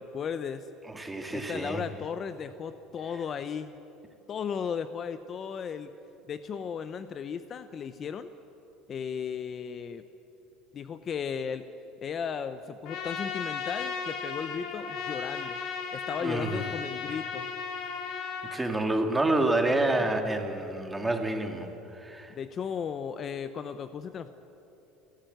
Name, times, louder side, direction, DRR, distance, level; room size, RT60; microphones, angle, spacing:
voice 1, 0.0-0.7 1.3-3.7 4.3-5.9 6.3-8.3 8.9-10.0 10.7-11.7 12.0-15.6 15.9-17.5 20.0-20.1 22.3-24.3, left 7 dB, 35° left, 12 dB, 0.7 m, -35 dB
voice 2, 0.9-1.8 16.2-16.7 18.5-22.3, right 2 dB, 10° right, 5 dB, 2.0 m, -28 dB
Trumpet, 12.8-18.6, left 5 dB, 60° left, 2.7 m, -35 dB
30.0 x 11.5 x 8.0 m, 3.0 s
supercardioid pair, 125°, 0 cm